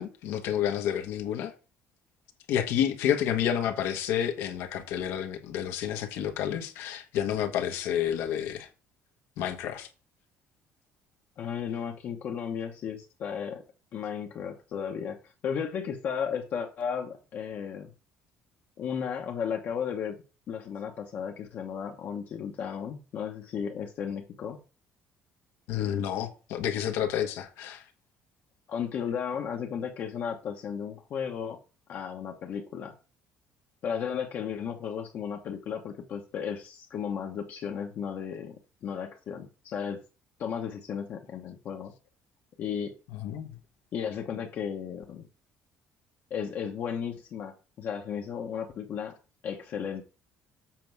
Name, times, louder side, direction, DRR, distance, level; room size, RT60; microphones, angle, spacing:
voice 1, 0.0-1.5 2.5-8.7 9.4-9.9 25.7-27.8 43.1-43.5, left 10 dB, 85° left, 1.3 m, -30 dB
voice 2, 11.4-13.6 13.9-17.9 18.8-20.2 20.5-24.6 28.7-31.6 31.9-32.9 33.8-38.6 38.8-40.0 40.4-41.9 42.6-42.9 43.9-45.3 46.3-49.1 49.4-50.0, left 7 dB, 50° left, 1.0 m, -34 dB
7.7 x 5.3 x 4.6 m
cardioid pair, 145°, 4 cm